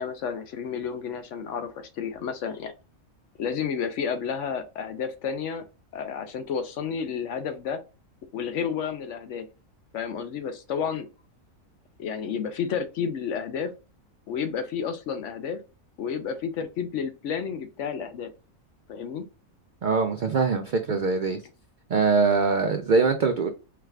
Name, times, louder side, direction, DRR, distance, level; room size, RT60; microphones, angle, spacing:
voice 1, 0.0-2.7 3.4-5.6 5.9-7.8 8.3-9.5 9.9-11.1 12.0-13.7 14.3-15.6 16.0-18.3 18.9-19.2, left 7 dB, 65° left, 0.9 m, -31 dB
voice 2, 19.8-21.4 21.9-23.5, right 4 dB, 80° right, 0.4 m, -23 dB
4.7 x 2.4 x 3.2 m
omnidirectional pair, 1.4 m